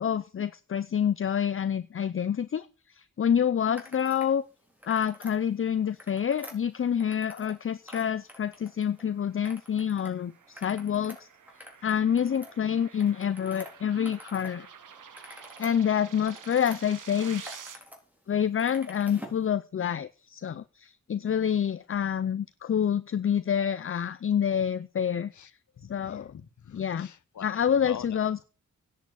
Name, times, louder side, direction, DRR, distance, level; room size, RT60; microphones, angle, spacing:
voice 1, 0.0-4.4 4.9-11.3 11.8-14.7 15.6-17.8 18.3-25.3 25.9-26.3 26.7-27.1 27.4-28.4, left 8 dB, 45° left, 0.6 m, -27 dB
sound 1, 3.7-4.3 4.7-5.4 5.8-7.6 7.8-9.0 9.4-10.1 10.4-14.5 14.9-16.8 17.2-18.0 18.3-19.4, equal, 5° right, 4.0 m, -47 dB
sound 2, 8.9-17.8, right 7 dB, 85° right, 1.4 m, -49 dB
voice 2, 25.3-28.2, left 8 dB, 70° left, 1.0 m, -45 dB
10.5 x 8.5 x 6.9 m
wide cardioid pair, 100°, 31 cm